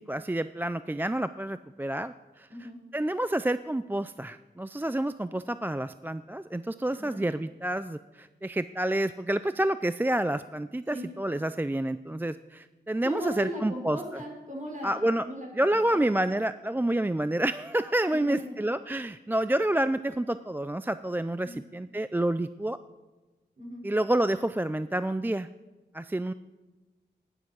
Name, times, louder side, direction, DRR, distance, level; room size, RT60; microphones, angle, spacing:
voice 1, 0.0-2.5 2.9-14.0 14.8-15.3 15.5-22.8 23.8-25.5 25.9-26.3, right 1 dB, 10° right, 13 dB, 0.3 m, -29 dB
voice 2, 13.0-16.0 18.1-18.4 21.4-21.6 23.6-23.8, equal, 45° right, -1 dB, 5.4 m, -38 dB
12.5 x 10.5 x 6.0 m, 1.2 s
cardioid pair, 55°, 19 cm